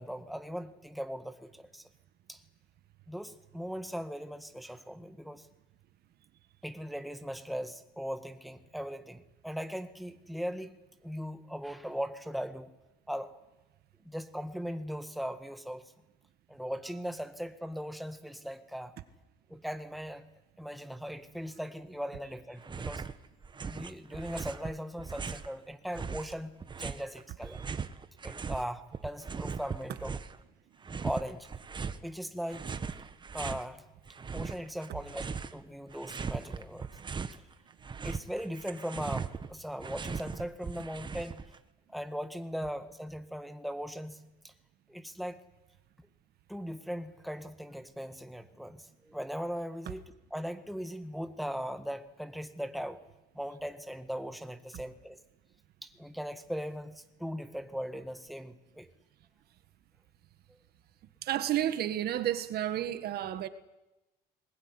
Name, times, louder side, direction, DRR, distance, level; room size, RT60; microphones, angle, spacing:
voice 1, 0.0-1.9 2.3-2.4 3.1-5.5 6.6-10.8 11.0-12.7 13.1-13.3 14.0-15.8 16.5-18.9 19.5-20.2 20.6-23.1 23.7-26.5 26.8-27.6 28.2-30.2 31.0-31.5 32.0-32.6 33.3-33.8 34.3-35.2 35.5-36.9 38.0-41.4 41.9-44.5 44.9-45.4 46.5-53.0 53.3-55.2 55.8-58.9, equal, ahead, 1.8 m, -39 dB
sound 1, 22.6-23.2 23.4-25.5 25.9-28.6 28.9-30.4 30.8-32.0 32.5-33.7 34.1-35.6 35.9-37.4 37.7-41.6, right 5 dB, 25° right, 1.3 m, -39 dB
voice 2, 61.2-63.5, right 12 dB, 70° right, 1.7 m, -31 dB
20.5 x 20.5 x 9.9 m
cardioid pair, 110°, 17 cm